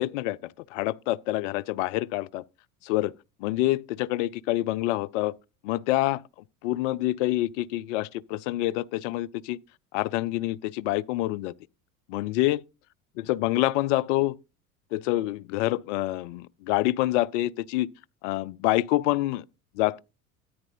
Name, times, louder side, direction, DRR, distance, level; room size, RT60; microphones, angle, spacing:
voice 1, 0.0-2.4 2.8-3.1 3.4-5.3 5.6-6.2 6.6-9.6 9.9-11.5 12.1-12.6 13.2-14.4 14.9-17.9 18.2-19.4 19.8-20.0, left 16 dB, 60° left, 0.6 m, -27 dB
13.5 x 9.4 x 2.6 m
figure-of-eight pair, 70°, 43 cm